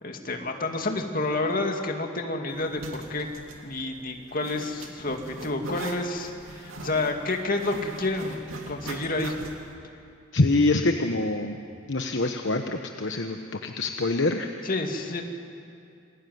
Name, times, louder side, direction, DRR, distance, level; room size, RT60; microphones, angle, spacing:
voice 1, 0.0-2.8 3.1-3.3 3.6-8.4 8.7-9.3 14.6-15.2, left 2 dB, 45° left, 3 dB, 2.4 m, -29 dB
Zipper (clothing), 2.5-9.7, right 2 dB, 85° right, 2.8 m, -41 dB
voice 2, 10.3-11.6 11.9-14.5, left 2 dB, 60° left, 5 dB, 1.1 m, -25 dB
28.0 x 21.5 x 9.5 m, 2.5 s
head